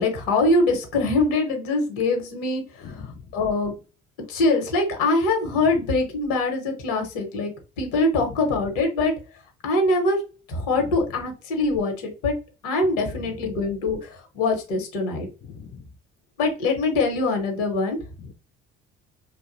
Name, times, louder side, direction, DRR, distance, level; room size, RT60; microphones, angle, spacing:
voice 1, 0.0-3.0 3.3-3.7 4.3-9.1 9.6-10.2 10.5-12.3 12.6-15.3 16.4-18.0, left 2 dB, 75° left, 4 dB, 0.9 m, -23 dB
voice 2, 2.8-3.3 5.5-5.7 8.1-8.4 10.7-11.0 13.1-13.4 15.4-15.9 18.2-18.3, left 5 dB, 35° left, 6 dB, 0.4 m, -40 dB
2.6 x 2.0 x 2.5 m, 0.33 s
hypercardioid pair, 55°, 30 cm